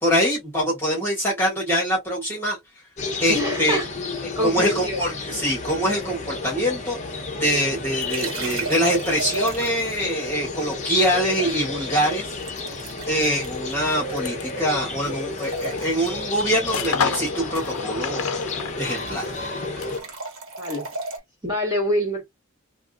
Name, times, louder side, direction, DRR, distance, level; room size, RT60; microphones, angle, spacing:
voice 1, 0.0-2.6 3.2-3.8 4.2-12.8 13.1-19.3, equal, 10° left, 1.8 m, -24 dB
sound 1, 3.0-20.0, left 3 dB, 35° left, 0.7 m, -32 dB
voice 2, 3.3-3.9 4.4-5.1 20.6-20.9 21.4-22.2, equal, 20° right, 2.1 m, -25 dB
sound 2, 8.0-10.0 12.4-14.8 15.0-16.2 18.0-18.2 18.5-21.2, right 3 dB, 75° right, 1.2 m, -35 dB
sound 3, 13.4-20.1, left 6 dB, 90° left, 0.6 m, -33 dB
3.4 x 2.5 x 2.5 m
head